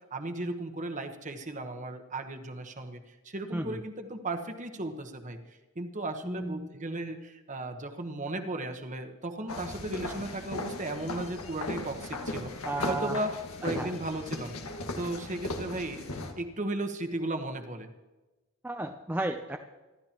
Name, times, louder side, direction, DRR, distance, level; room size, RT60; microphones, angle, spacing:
voice 1, 0.1-3.0 3.2-5.4 5.7-12.5 12.9-13.3 13.6-14.5 15.0-17.9, right 2 dB, 35° right, 6 dB, 1.2 m, -35 dB
voice 2, 6.2-6.7 10.0-10.2 12.7-13.2 13.6-13.9 18.6-19.6, right 2 dB, 10° right, 3 dB, 0.5 m, -33 dB
sound 1, 9.5-16.3, left 2 dB, 85° left, 1.7 m, -37 dB
25.0 x 13.0 x 3.0 m, 1.1 s
head